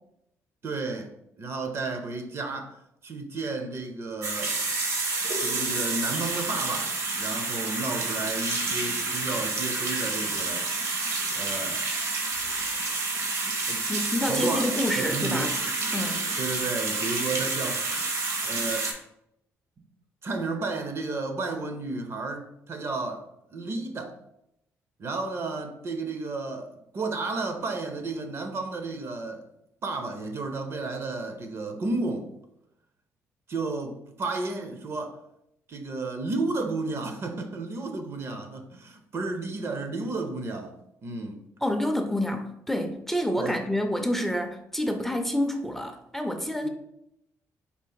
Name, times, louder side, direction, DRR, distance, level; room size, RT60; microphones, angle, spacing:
voice 1, 0.6-1.1 1.4-2.8 3.0-4.6 5.4-10.7 11.4-11.8 13.7-14.7 15.0-15.5 16.4-17.9 18.4-18.9 19.8-19.9 20.2-23.2 23.5-24.2 25.0-29.4 29.8-32.3 33.5-35.2 35.7-41.4 43.4-43.6 46.6-46.7, right 3 dB, 50° right, 0.6 m, -32 dB
sound 1, 4.2-18.9, right 3 dB, 65° right, 1.0 m, -29 dB
voice 2, 13.9-15.5 15.9-16.2 41.6-46.7, left 1 dB, 5° left, 0.5 m, -28 dB
4.0 x 2.5 x 4.0 m
cardioid pair, 85°, 6 cm